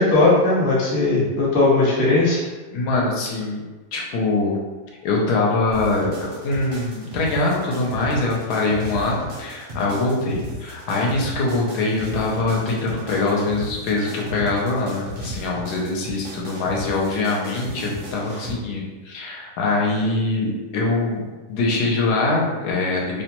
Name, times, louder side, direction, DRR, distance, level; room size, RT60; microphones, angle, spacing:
voice 1, 0.0-2.4, left 2 dB, 40° left, -6 dB, 0.8 m, -18 dB
voice 2, 2.7-4.6 5.0-21.2 21.5-23.2, left 2 dB, 80° left, -2 dB, 1.1 m, -23 dB
sound 1, 5.7-18.5, equal, 55° right, 0.6 m, -35 dB
2.8 x 2.1 x 2.8 m, 1.2 s
omnidirectional pair, 1.7 m